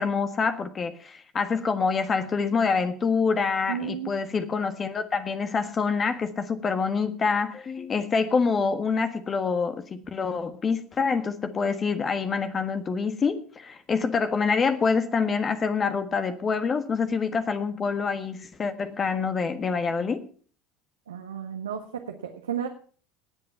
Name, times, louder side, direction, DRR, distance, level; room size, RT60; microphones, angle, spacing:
voice 1, 0.0-20.2, left 5 dB, 30° left, 10 dB, 1.5 m, -26 dB
voice 2, 3.7-4.1 21.1-22.7, right 8 dB, 80° right, 4 dB, 1.4 m, -33 dB
19.0 x 8.0 x 5.8 m, 0.44 s
figure-of-eight pair, 70°, 0 cm